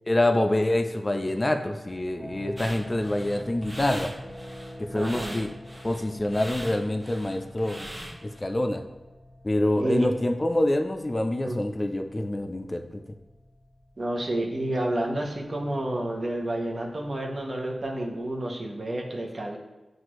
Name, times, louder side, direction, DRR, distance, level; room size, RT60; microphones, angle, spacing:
voice 1, 0.1-4.1 4.8-5.5 5.8-7.9 8.2-8.8 9.4-13.0, left 1 dB, 35° left, 6 dB, 0.4 m, -26 dB
sound 1, 1.8-18.3, left 1 dB, 20° left, 0.9 m, -47 dB
sound 2, 2.6-8.4, equal, 20° right, 0.9 m, -41 dB
voice 2, 4.9-5.4 9.8-10.1 11.4-11.6 14.0-19.6, right 1 dB, 55° right, 0 dB, 0.8 m, -30 dB
6.0 x 2.5 x 3.0 m, 1.1 s
cardioid pair, 45°, 0 cm